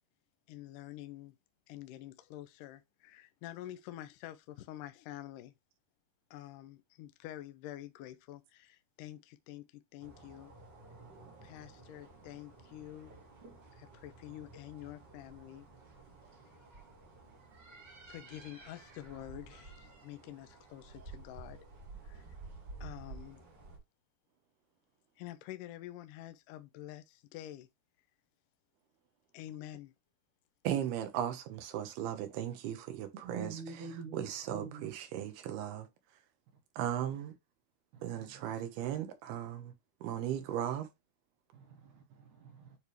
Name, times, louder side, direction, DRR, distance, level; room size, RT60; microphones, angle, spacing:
voice 1, 0.5-1.4 1.7-5.5 6.3-10.5 11.4-13.2 13.8-15.7 18.1-21.6 22.0-22.3 22.8-23.4 25.2-27.7 29.3-29.9, left 13 dB, 80° left, 1.9 m, -48 dB
sound 1, 10.0-23.8, right 3 dB, 35° right, 1.9 m, -52 dB
voice 2, 30.6-35.9 36.8-37.3 38.0-39.7 40.0-40.9, right 10 dB, 80° right, 3.0 m, -37 dB
voice 3, 33.2-34.3 34.5-34.9 37.9-38.3 41.5-42.8, right 5 dB, 65° right, 2.3 m, -45 dB
9.5 x 3.4 x 3.1 m
omnidirectional pair, 4.5 m